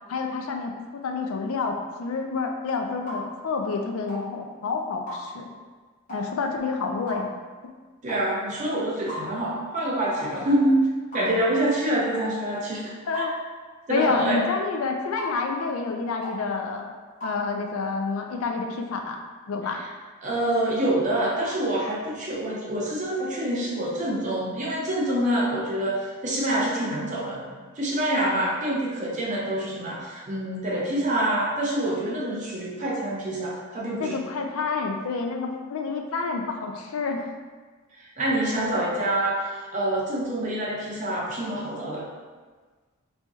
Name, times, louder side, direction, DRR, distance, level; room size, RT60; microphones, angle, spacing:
voice 1, 0.1-5.5 6.1-7.3 13.1-13.4 13.9-16.9 17.2-19.2 19.5-19.8 34.0-37.3, left 4 dB, 70° left, 3 dB, 0.4 m, -28 dB
sound 1, 3.1-3.2 4.1-4.3 5.1-5.2 6.1-6.3 7.1-7.3 8.1-8.3 9.1-9.2 10.1-10.3 11.1-11.3 12.1-12.3 13.1-13.3 14.2-14.4 15.2-15.4 16.2-16.4 17.2-17.4, left 1 dB, 35° left, 1.0 m, -36 dB
voice 2, 8.0-13.2 13.9-14.4 19.7-19.9 20.2-27.5 27.8-34.2 38.0-42.1, right 1 dB, 35° right, -4 dB, 0.6 m, -26 dB
4.3 x 2.7 x 2.3 m, 1.4 s
head